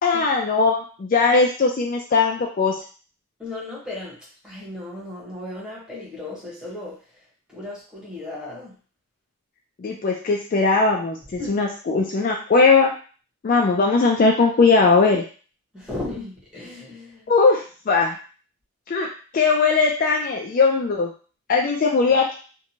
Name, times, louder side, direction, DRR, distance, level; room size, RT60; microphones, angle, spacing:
voice 1, 0.0-2.8 9.8-12.9 13.4-15.2 17.3-18.1 18.9-19.1 19.3-21.1 21.5-22.3, left 4 dB, 40° left, 1 dB, 0.3 m, -19 dB
voice 2, 3.4-4.2 4.4-7.2 7.5-8.7 11.4-11.5 15.7-17.2, left 2 dB, 5° right, -6 dB, 1.0 m, -35 dB
2.8 x 2.2 x 2.7 m, 0.38 s
head